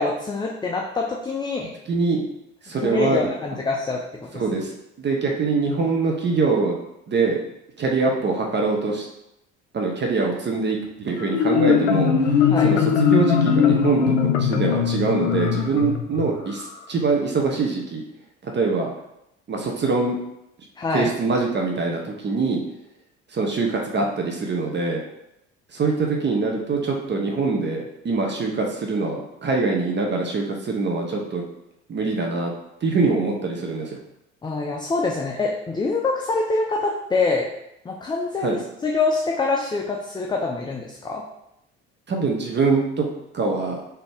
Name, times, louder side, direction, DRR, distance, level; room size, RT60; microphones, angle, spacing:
voice 1, 0.0-1.7 2.8-4.6 12.5-12.7 20.8-21.1 34.4-37.5 37.8-41.2, left 3 dB, 15° left, 0 dB, 0.4 m, -25 dB
voice 2, 1.9-2.2 2.6-3.6 4.3-4.7 5.0-6.8 7.1-7.4 7.8-9.1 9.7-18.0 18.4-18.9 19.5-20.2 20.9-22.6 23.3-25.0 25.7-31.4 31.9-32.5 32.8-34.0 38.4-38.6 42.1-43.1 43.3-43.8, right 4 dB, 30° right, 0 dB, 0.8 m, -24 dB
Marimba xylophone, 11.2-16.7, left 7 dB, 85° left, 0.5 m, -20 dB
4.0 x 2.8 x 3.4 m, 0.83 s
hypercardioid pair, 60°, 34 cm